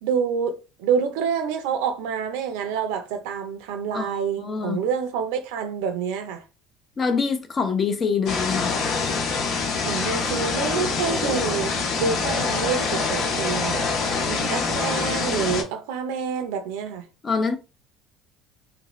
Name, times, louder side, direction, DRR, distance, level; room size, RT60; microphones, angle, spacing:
voice 1, 0.0-6.4 9.8-17.0, right 6 dB, 85° right, 0.6 m, -27 dB
voice 2, 3.9-4.8 7.0-8.7 17.2-17.6, left 5 dB, 30° left, 0.6 m, -25 dB
sound 1, 8.3-15.6, left 4 dB, 65° left, 0.9 m, -25 dB
2.8 x 2.6 x 3.0 m
supercardioid pair, 100°, 0 cm